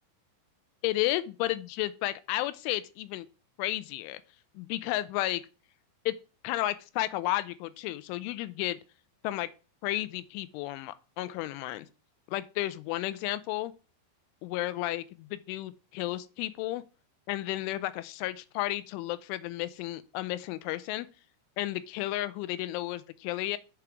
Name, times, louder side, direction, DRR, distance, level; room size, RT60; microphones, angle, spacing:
voice 1, 0.8-3.3 3.6-4.2 4.6-5.4 6.1-6.2 6.4-8.8 9.2-9.5 9.8-11.9 12.3-13.7 14.4-16.8 17.3-21.1 21.6-23.6, left 16 dB, 85° left, 3.1 m, -32 dB
8.7 x 6.2 x 4.6 m
omnidirectional pair, 5.5 m